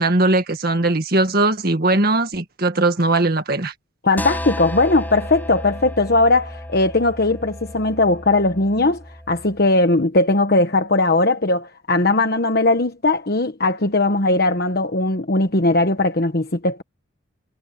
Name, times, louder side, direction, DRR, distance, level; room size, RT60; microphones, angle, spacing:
voice 1, 0.0-3.7, right 2 dB, 45° right, 1.9 m, -19 dB
voice 2, 4.0-9.0 9.3-16.8, left 2 dB, 50° left, 1.3 m, -19 dB
sound 1, 4.2-9.6, left 1 dB, 10° left, 7.7 m, -33 dB
head